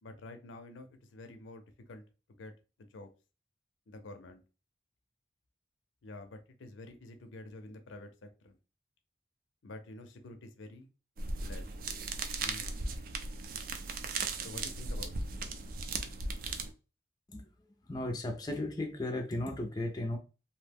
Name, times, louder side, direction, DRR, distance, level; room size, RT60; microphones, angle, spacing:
voice 1, 0.0-2.0 2.4-2.5 2.8-3.1 3.9-4.4 6.0-8.6 9.6-10.9 11.4-11.7 12.4-12.8 14.4-15.1, left 2 dB, 80° left, 0.5 m, -48 dB
Mandarin Peeling, 11.2-16.7, right 3 dB, 50° right, 0.4 m, -37 dB
voice 2, 17.8-20.2, left 1 dB, 20° left, 0.4 m, -35 dB
2.6 x 2.1 x 3.3 m
head